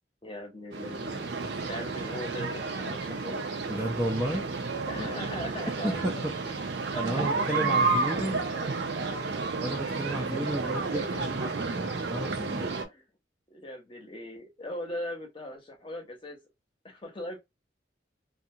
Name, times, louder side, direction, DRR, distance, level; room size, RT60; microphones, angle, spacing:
voice 1, 0.2-3.4 4.9-6.2 6.9-9.4 10.0-10.4 10.9-11.2 12.8-13.0 13.5-16.4 16.8-17.4, left 1 dB, 30° left, 0.8 m, -40 dB
sound 1, 0.7-12.8, right 4 dB, 65° right, 0.6 m, -31 dB
voice 2, 3.7-4.5 5.8-6.3 6.9-8.3 9.6-12.7, right 1 dB, 10° right, 0.5 m, -32 dB
2.5 x 2.2 x 2.7 m
head